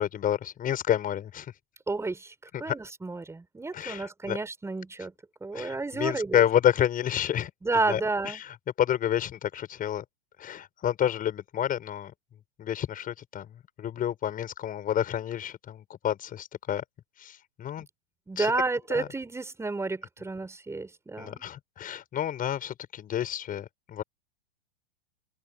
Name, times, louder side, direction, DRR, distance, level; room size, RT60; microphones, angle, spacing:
voice 1, 0.0-1.5 2.5-2.7 3.7-4.4 5.5-7.5 7.9-10.0 10.4-12.1 12.6-16.8 17.2-17.9 18.4-18.5 18.9-19.1 21.2-24.0, left 10 dB, 25° left, 6.7 m, -29 dB
voice 2, 1.9-2.3 2.6-5.1 5.4-6.4 7.6-8.4 18.3-21.4, right 3 dB, 10° right, 6.0 m, -31 dB
hypercardioid pair, 105°, 31 cm